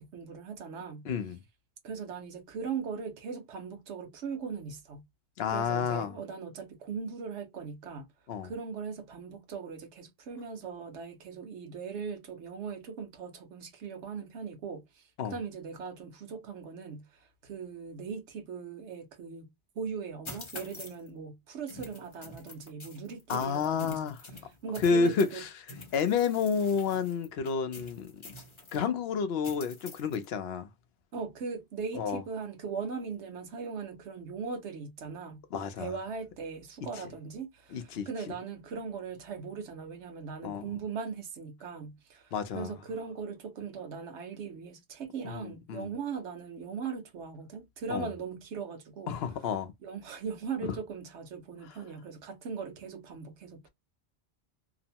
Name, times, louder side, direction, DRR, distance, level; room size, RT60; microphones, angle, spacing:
voice 1, 0.0-1.1 1.8-5.1 5.5-8.1 8.4-24.1 24.6-25.4 31.1-35.4 35.8-49.2 49.8-53.7, right 5 dB, 85° right, 1.1 m, -39 dB
voice 2, 1.0-1.4 5.4-6.2 8.3-8.5 15.2-15.3 23.3-24.2 24.8-25.5 25.9-28.1 28.7-30.7 31.9-32.2 35.5-35.9 37.7-38.1 40.4-40.7 42.3-42.7 45.2-45.9 47.9-48.1 49.1-49.7, left 6 dB, 70° left, 0.8 m, -30 dB
sound 1, 20.2-21.1 21.7-25.4 25.7-28.8 29.4-30.3, left 2 dB, 30° left, 0.6 m, -47 dB
2.9 x 2.0 x 2.7 m
omnidirectional pair, 1.1 m